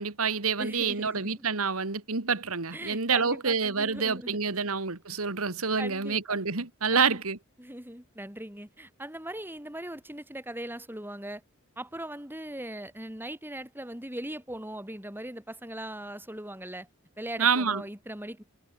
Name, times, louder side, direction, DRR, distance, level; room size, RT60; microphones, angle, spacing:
voice 1, 0.0-7.4 17.4-17.8, right 5 dB, 80° right, 1.9 m, -27 dB
voice 2, 0.6-1.5 2.7-4.4 5.8-6.4 6.9-7.2 7.6-11.4 11.8-16.9 17.2-18.4, right 1 dB, 10° right, 6.2 m, -40 dB
head